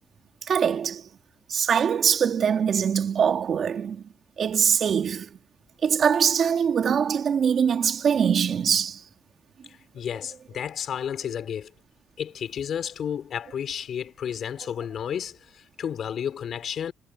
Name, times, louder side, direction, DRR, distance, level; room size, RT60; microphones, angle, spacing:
voice 1, 0.5-1.0 1.5-4.0 4.4-5.3 5.8-9.0, right 7 dB, 55° right, 2.6 m, -23 dB
voice 2, 9.7-11.7 12.2-16.9, left 8 dB, 60° left, 3.6 m, -32 dB
cardioid pair, 90°, 0 cm